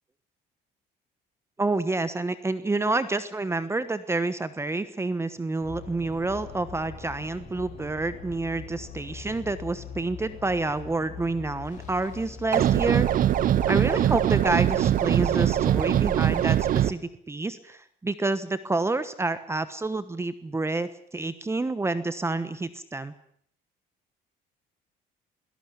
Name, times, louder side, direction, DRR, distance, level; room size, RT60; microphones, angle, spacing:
voice 1, 1.6-13.1 13.7-17.0 17.3-23.1, right 2 dB, 15° right, 13 dB, 1.2 m, -28 dB
sound 1, 5.6-16.0, left 7 dB, 50° left, 7.8 m, -42 dB
sound 2, 12.5-16.9, right 11 dB, 55° right, 1.0 m, -22 dB
22.5 x 18.0 x 8.1 m, 0.63 s
cardioid pair, 110°, 17 cm